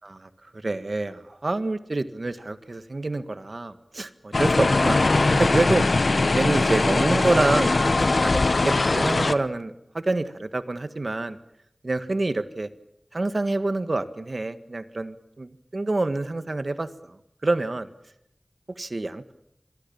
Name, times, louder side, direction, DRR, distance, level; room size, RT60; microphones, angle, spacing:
voice 1, 0.0-5.9 6.3-11.4 11.8-12.7 13.1-17.9 18.8-19.3, right 2 dB, 60° right, 11 dB, 1.7 m, -27 dB
sound 1, 4.3-9.3, left 3 dB, 70° left, 1.0 m, -21 dB
26.5 x 23.0 x 7.3 m, 0.79 s
wide cardioid pair, 55°, 0 cm